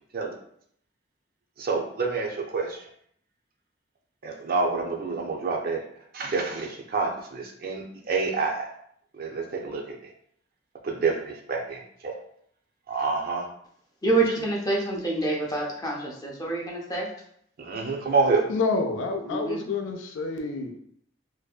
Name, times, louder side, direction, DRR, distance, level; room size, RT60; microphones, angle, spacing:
voice 1, 1.6-2.8 4.2-5.8 6.1-8.7 9.1-10.1 10.8-12.1 12.9-13.5 17.6-18.4, right 4 dB, 50° right, 1 dB, 0.4 m, -28 dB
voice 2, 14.0-17.1 19.2-19.7, right 2 dB, 20° left, -2 dB, 0.5 m, -27 dB
voice 3, 18.5-20.8, left 3 dB, 85° left, 4 dB, 0.4 m, -28 dB
2.6 x 2.1 x 2.3 m, 0.66 s
head